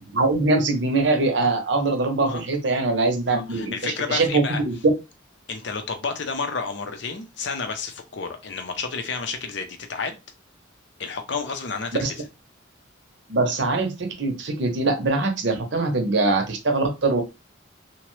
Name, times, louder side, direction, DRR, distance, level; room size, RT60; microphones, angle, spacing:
voice 1, 0.1-4.7 12.0-12.1 13.3-17.2, right 3 dB, 65° right, 0.7 m, -23 dB
voice 2, 3.3-4.6 5.5-10.2 11.0-12.2, left 5 dB, 60° left, 0.5 m, -31 dB
2.9 x 2.1 x 3.1 m
head